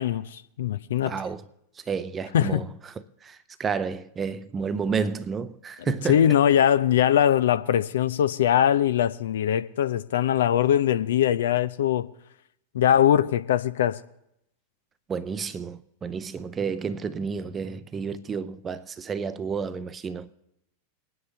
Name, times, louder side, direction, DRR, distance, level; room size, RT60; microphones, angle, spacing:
voice 1, 0.0-1.1 2.3-2.6 6.1-12.1 12.7-14.0, left 10 dB, 60° left, 0.5 m, -21 dB
voice 2, 1.0-1.5 1.8-6.3 15.1-20.3, right 6 dB, 20° right, 0.7 m, -31 dB
22.0 x 9.5 x 3.3 m
figure-of-eight pair, 90°, 0 cm